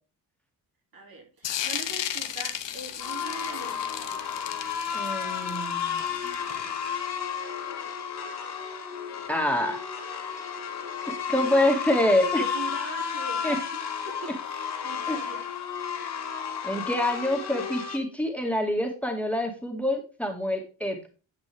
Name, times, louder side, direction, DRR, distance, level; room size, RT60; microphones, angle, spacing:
voice 1, 0.9-4.3 10.0-10.5 12.4-13.8 14.0-15.4, right 4 dB, 55° right, 2 dB, 2.9 m, -42 dB
sound 1, 1.4-6.8, left 10 dB, 90° left, 1.1 m, -34 dB
sound 2, 3.0-18.0, left 7 dB, 65° left, 2.9 m, -32 dB
voice 2, 4.9-6.0 9.3-9.8 11.1-12.4 13.4-13.6 15.1-15.2 16.6-21.1, left 1 dB, 5° left, 2 dB, 1.9 m, -26 dB
10.0 x 6.8 x 3.4 m, 0.34 s
cardioid pair, 95°, 42 cm